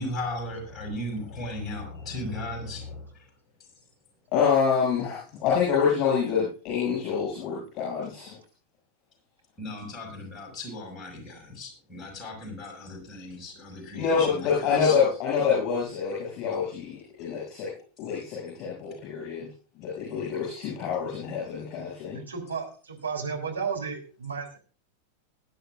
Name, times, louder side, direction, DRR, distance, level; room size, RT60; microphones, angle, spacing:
voice 1, 0.0-3.3 9.6-15.0, left 1 dB, 20° left, 1 dB, 6.0 m, -36 dB
voice 2, 4.3-8.4 13.9-17.7 18.0-19.5 19.8-22.2, left 6 dB, 40° left, -4 dB, 6.9 m, -26 dB
voice 3, 22.1-24.6, right 5 dB, 75° right, 1 dB, 3.5 m, -33 dB
21.0 x 10.0 x 2.5 m, 0.36 s
figure-of-eight pair, 90°, 0 cm